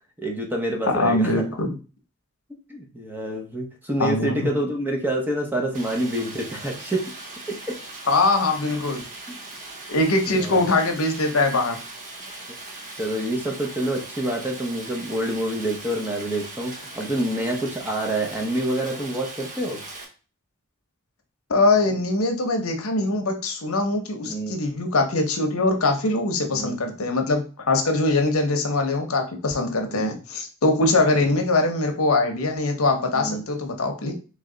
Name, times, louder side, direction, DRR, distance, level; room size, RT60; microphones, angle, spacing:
voice 1, 0.2-1.4 2.7-7.1 7.5-7.8 10.3-10.6 12.5-12.6 13.0-19.8 24.2-24.6 26.5-26.8 29.8-30.1 31.2-31.3 33.1-33.4, right 1 dB, 10° right, 0 dB, 0.8 m, -27 dB
voice 2, 0.9-1.7 4.0-4.4 8.1-9.0 9.9-11.8 21.5-34.1, left 2 dB, 75° left, 4 dB, 0.8 m, -22 dB
Stream, 5.7-20.1, right 2 dB, 35° right, 1.1 m, -39 dB
3.4 x 3.2 x 3.8 m, 0.35 s
head